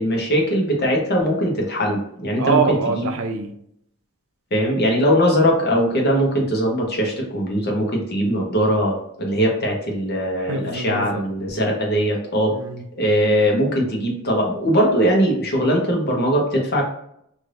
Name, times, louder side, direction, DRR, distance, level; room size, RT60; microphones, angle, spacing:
voice 1, 0.0-2.6 3.0-3.1 4.5-12.5 13.0-16.9, equal, 45° left, 0 dB, 0.9 m, -20 dB
voice 2, 2.4-3.5 10.4-11.2 12.5-12.8, right 4 dB, 65° right, 5 dB, 0.5 m, -24 dB
3.2 x 2.6 x 2.6 m, 0.72 s
head